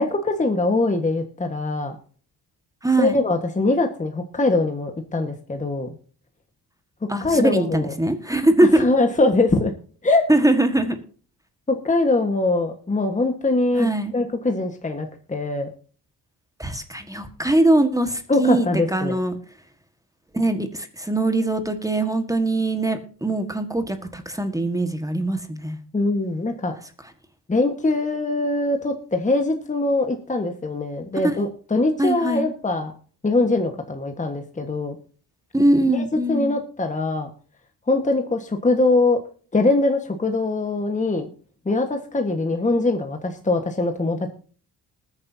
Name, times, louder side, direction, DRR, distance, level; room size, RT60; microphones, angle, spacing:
voice 1, 0.0-1.9 3.0-5.9 7.2-7.9 8.8-9.7 10.0-10.2 11.7-15.7 18.3-19.2 25.9-26.7 27.5-32.9 33.2-35.0 35.9-37.3 37.9-39.2 39.5-41.3 41.6-44.3, left 2 dB, 20° left, 5 dB, 1.5 m, -22 dB
voice 2, 2.8-3.2 7.1-8.9 10.3-11.0 13.7-14.1 16.6-19.4 20.3-25.8 31.2-31.5 32.0-32.5 35.5-36.6, right 1 dB, 10° right, 7 dB, 1.6 m, -21 dB
20.0 x 9.7 x 2.8 m, 0.42 s
cardioid pair, 120°, 41 cm